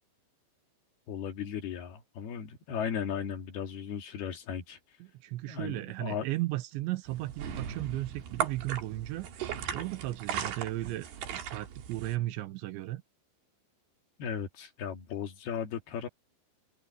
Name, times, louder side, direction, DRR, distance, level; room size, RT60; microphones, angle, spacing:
voice 1, 1.1-4.8 5.5-6.3 14.2-16.1, left 7 dB, 60° left, 3.9 m, -36 dB
voice 2, 5.0-9.3 9.7-13.0, right 17 dB, 80° right, 3.2 m, -35 dB
sound 1, 7.1-12.2, right 9 dB, 60° right, 3.9 m, -37 dB
open air
omnidirectional pair, 5.4 m